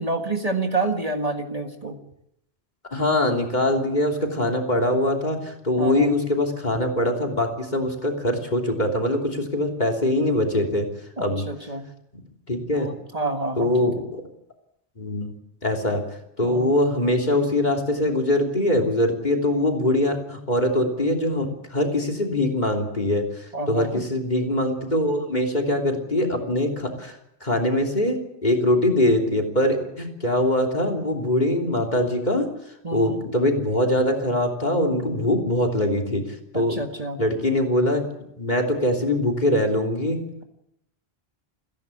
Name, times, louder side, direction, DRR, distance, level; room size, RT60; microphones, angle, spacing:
voice 1, 0.0-2.0 5.8-6.1 11.2-11.9 12.7-14.1 16.4-16.7 23.5-24.1 32.8-33.2 36.5-37.2, right 2 dB, 35° right, 4 dB, 1.8 m, -28 dB
voice 2, 2.9-10.9 11.2-11.4 12.5-12.9 13.6-14.2 15.0-15.3 15.6-16.0 16.4-27.2 27.4-32.5 32.9-36.8 37.2-38.0 38.4-40.2, left 1 dB, 45° left, 5 dB, 3.3 m, -23 dB
29.5 x 11.0 x 8.4 m, 0.80 s
omnidirectional pair, 1.1 m